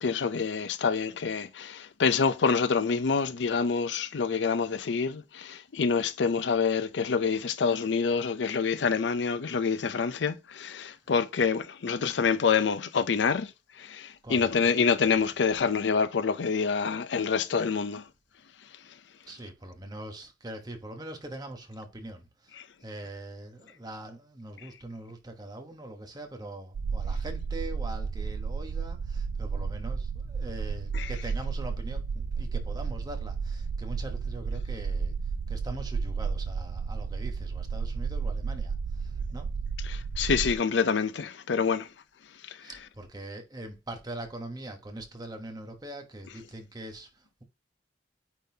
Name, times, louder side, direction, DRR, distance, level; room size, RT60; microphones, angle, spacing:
voice 1, 0.0-13.5 13.8-18.0 30.9-31.1 39.9-41.9, left 5 dB, 85° left, 0.5 m, -27 dB
voice 2, 14.2-14.8 19.3-35.1 35.5-39.5 42.6-47.4, right 1 dB, 20° right, 1.1 m, -42 dB
sound 1, 26.7-40.6, right 5 dB, 85° right, 0.3 m, -32 dB
8.9 x 3.8 x 2.8 m
head